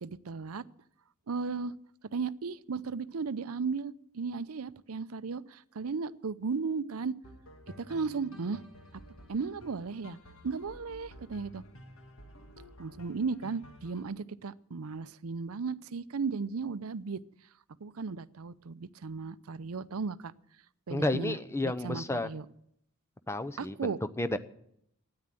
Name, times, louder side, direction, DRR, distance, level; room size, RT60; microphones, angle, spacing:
voice 1, 0.0-0.6 1.3-1.7 2.1-7.1 7.8-8.6 9.3-10.2 10.4-11.6 12.8-17.2 17.8-20.3 20.9-21.4 21.6-22.5 23.6-24.0, right 5 dB, 75° right, 16 dB, 0.6 m, -35 dB
sound 1, 7.2-14.0, equal, 65° left, 1.8 m, -52 dB
voice 2, 20.9-22.3 23.3-24.4, left 2 dB, 10° left, 11 dB, 0.6 m, -31 dB
13.0 x 9.8 x 7.5 m, 0.72 s
head